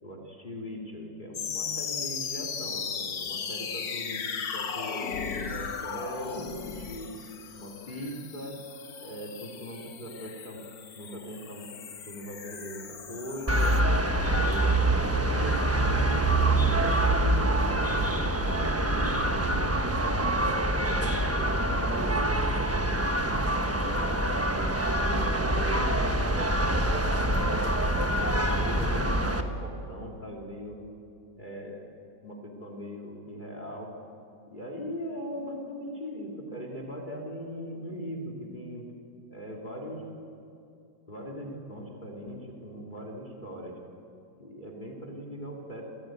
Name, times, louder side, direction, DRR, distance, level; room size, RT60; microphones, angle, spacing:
voice 1, 0.0-7.1 7.5-8.6 9.0-10.6 10.9-11.6 12.1-13.7 14.2-16.3 16.7-20.3 20.9-22.4 23.6-24.7 25.0-26.5 26.8-30.8 31.4-31.9 32.2-33.9 34.5-38.9 39.3-40.0 41.1-43.7 44.4-45.8, equal, 25° left, 1 dB, 2.8 m, -39 dB
sound 1, 1.3-13.8, left 6 dB, 60° left, 1.6 m, -37 dB
sound 2, 13.5-29.4, right 1 dB, 10° right, 0.8 m, -25 dB
29.5 x 14.5 x 9.0 m, 2.6 s
omnidirectional pair, 2.0 m